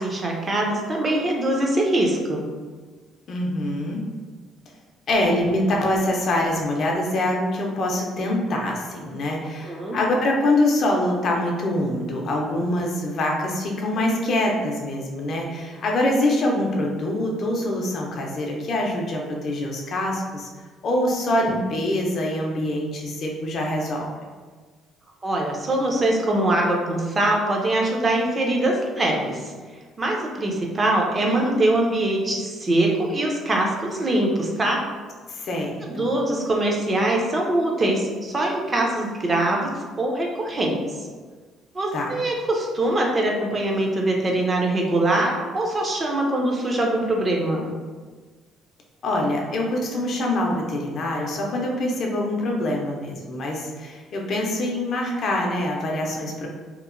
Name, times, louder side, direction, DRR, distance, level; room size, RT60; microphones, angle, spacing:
voice 1, 0.0-2.4 9.4-10.0 25.2-29.5 30.0-34.8 35.9-39.7 40.0-40.8 41.7-47.6, right 1 dB, 30° right, 0 dB, 0.5 m, -23 dB
voice 2, 3.3-4.0 5.1-20.5 20.8-24.1 35.3-36.1 41.9-42.1 49.0-56.5, left 1 dB, 55° left, -1 dB, 0.5 m, -24 dB
2.8 x 2.1 x 2.4 m, 1.4 s
cardioid pair, 115°, 0 cm